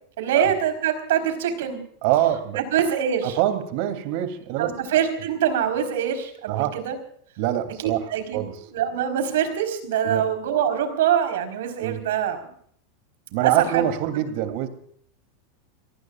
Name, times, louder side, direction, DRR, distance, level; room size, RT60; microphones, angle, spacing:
voice 1, 0.2-1.8 2.5-3.4 4.6-7.0 7.8-8.4 8.7-12.5 13.4-13.8, right 9 dB, 80° right, 7 dB, 4.5 m, -24 dB
voice 2, 2.0-2.6 3.2-4.7 6.5-6.8 7.4-8.6 10.0-10.2 11.8-12.0 13.3-14.7, right 12 dB, 60° right, 10 dB, 3.0 m, -25 dB
30.0 x 18.5 x 2.5 m, 0.63 s
supercardioid pair, 135°, 0 cm